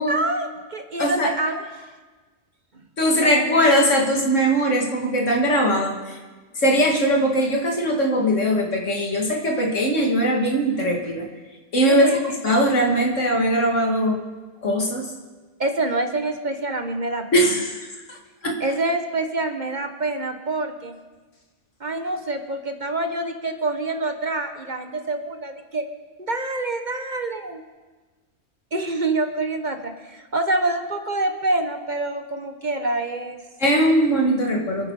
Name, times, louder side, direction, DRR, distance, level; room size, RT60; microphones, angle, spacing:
voice 1, 0.1-1.9 3.1-3.6 11.9-12.2 15.6-17.5 18.6-21.0 21.8-25.8 26.2-27.6 28.7-33.4, right 2 dB, 40° right, 6 dB, 1.1 m, -26 dB
voice 2, 1.0-1.3 3.0-6.2 6.6-11.3 11.7-12.0 12.4-14.2 14.6-15.1 17.3-18.2 18.4-18.6 33.6-34.9, equal, 80° left, 0 dB, 2.7 m, -20 dB
26.0 x 9.2 x 4.8 m, 1.3 s
omnidirectional pair, 1.3 m